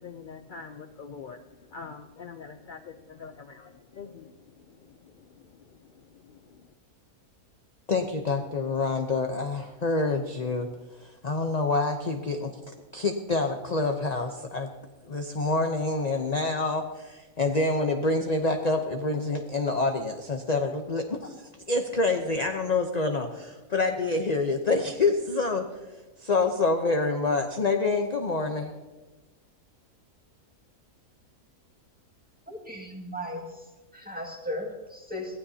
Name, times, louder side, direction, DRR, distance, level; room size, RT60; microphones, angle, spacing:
voice 1, 0.0-6.7, left 5 dB, 60° left, 7 dB, 0.5 m, -45 dB
voice 2, 7.9-14.7 15.0-28.7, left 3 dB, 35° left, 4 dB, 0.8 m, -27 dB
voice 3, 32.5-33.6 33.9-35.4, left 1 dB, 5° right, 0 dB, 2.0 m, -36 dB
22.0 x 15.5 x 2.8 m, 1.2 s
omnidirectional pair, 1.6 m